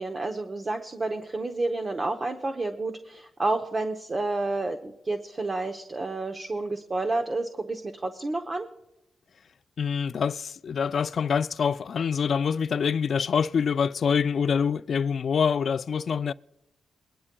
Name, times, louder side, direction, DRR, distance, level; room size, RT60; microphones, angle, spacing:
voice 1, 0.0-8.7, right 2 dB, 30° right, 0.8 m, -30 dB
voice 2, 9.8-16.3, left 6 dB, 55° left, 0.3 m, -25 dB
22.0 x 11.0 x 2.2 m
cardioid pair, 110°, 0 cm